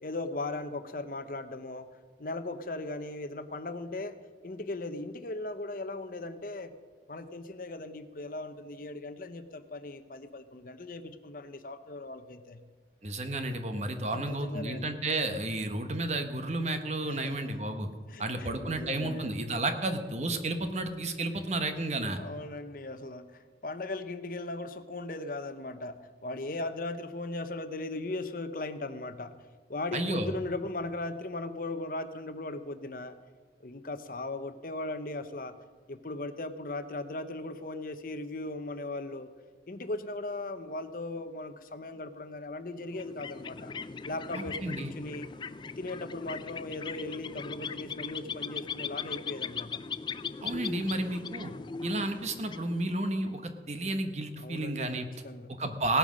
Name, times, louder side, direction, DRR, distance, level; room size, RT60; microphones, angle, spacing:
voice 1, 0.0-1.9 2.2-4.2 4.4-6.7 7.1-12.6 14.1-14.9 17.1-17.7 18.1-19.5 22.2-29.3 29.7-33.2 33.6-35.6 35.9-39.3 39.7-43.7 44.1-45.3 45.8-49.8 54.4-55.5, left 2 dB, 50° left, 10 dB, 0.8 m, -38 dB
voice 2, 13.0-17.9 18.2-22.2 29.9-30.3 44.3-44.9 50.4-51.5 51.8-55.1 55.6-56.0, right 2 dB, 40° right, 7 dB, 1.2 m, -32 dB
sound 1, 42.9-53.3, left 5 dB, 25° left, 0.3 m, -39 dB
17.5 x 9.2 x 6.3 m, 1.4 s
head